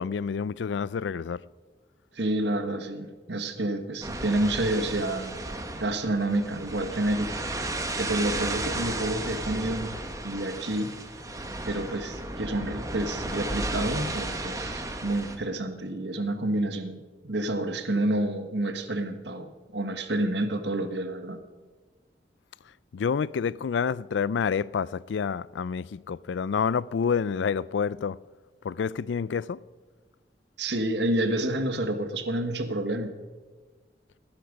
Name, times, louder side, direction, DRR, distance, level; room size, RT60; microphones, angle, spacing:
voice 1, 0.0-1.4 22.9-28.2 28.6-29.6, left 6 dB, 80° left, 0.4 m, -28 dB
voice 2, 2.1-5.4 5.8-7.3 8.0-10.0 10.2-11.0 11.6-21.4 30.6-33.1, right 1 dB, 75° right, 1.4 m, -29 dB
sound 1, 4.0-15.4, right 2 dB, 20° right, 1.2 m, -34 dB
18.0 x 10.5 x 5.2 m
head